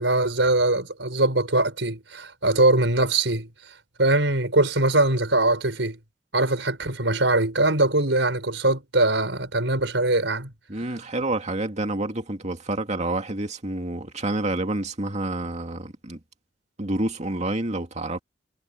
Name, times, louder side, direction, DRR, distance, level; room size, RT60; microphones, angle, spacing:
voice 1, 0.0-3.5 4.0-6.0 6.3-10.5, right 2 dB, 75° right, 5.3 m, -22 dB
voice 2, 10.7-16.2 16.8-18.2, right 2 dB, 40° right, 2.4 m, -28 dB
head